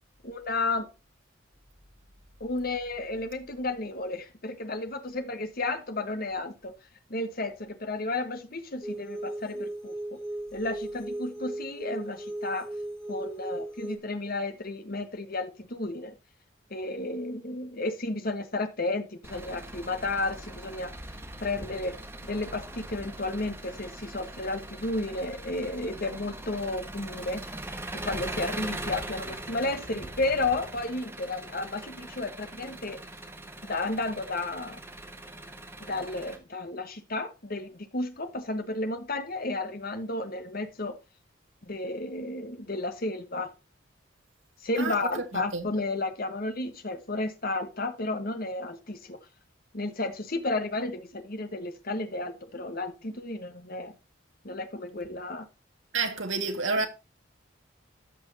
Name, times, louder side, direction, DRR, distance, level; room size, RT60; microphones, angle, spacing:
voice 1, 0.2-0.9 2.4-6.7 7.1-10.2 10.5-12.7 13.1-16.1 16.7-20.9 21.4-22.0 22.2-27.4 28.0-33.0 33.6-34.8 35.8-41.0 41.6-43.5 44.6-49.2 49.7-53.9 54.4-55.5, left 2 dB, 50° left, 1.4 m, -32 dB
sound 1, 8.8-14.0, right 1 dB, 5° left, 2.4 m, -37 dB
Engine, 19.2-36.4, right 1 dB, 10° right, 1.6 m, -41 dB
voice 2, 45.3-45.6 55.9-56.9, right 4 dB, 75° right, 2.0 m, -29 dB
13.5 x 6.1 x 2.8 m
head